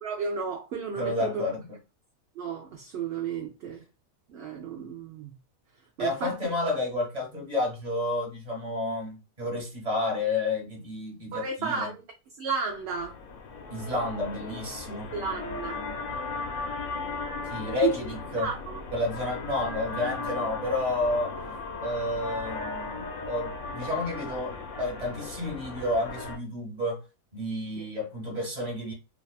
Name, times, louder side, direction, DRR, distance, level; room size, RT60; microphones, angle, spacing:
voice 1, 0.0-1.4 2.4-3.8 4.3-5.4 6.0-6.4 11.3-12.0 12.4-13.2 15.1-15.8 17.8-17.9 18.4-18.8 27.7-27.9, right 6 dB, 65° right, 0.7 m, -32 dB
voice 2, 1.0-1.7 6.0-11.9 13.7-15.1 17.5-18.5 18.9-21.3 21.8-27.0 27.3-28.9, left 2 dB, 30° right, 1.1 m, -30 dB
sound 1, 12.7-26.4, left 4 dB, 80° left, 1.1 m, -37 dB
2.6 x 2.3 x 2.3 m
omnidirectional pair, 1.5 m